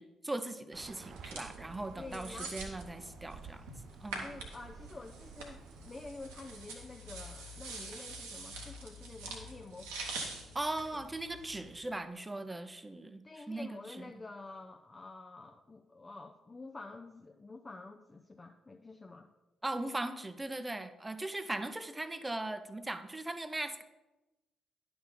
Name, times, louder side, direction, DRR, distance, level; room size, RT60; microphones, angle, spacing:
voice 1, 0.0-3.7 4.0-4.3 10.5-14.0 19.6-23.8, right 2 dB, 15° right, 10 dB, 0.7 m, -39 dB
Bird, 0.7-6.9, right 6 dB, 50° right, 0.3 m, -52 dB
sound 1, 1.0-11.8, right 2 dB, 75° right, 1.1 m, -46 dB
voice 2, 2.0-2.5 4.2-9.9 10.9-11.0 13.2-19.3, left 3 dB, 25° left, 4 dB, 0.5 m, -48 dB
10.5 x 5.8 x 3.8 m, 1.0 s
figure-of-eight pair, 40°, 0 cm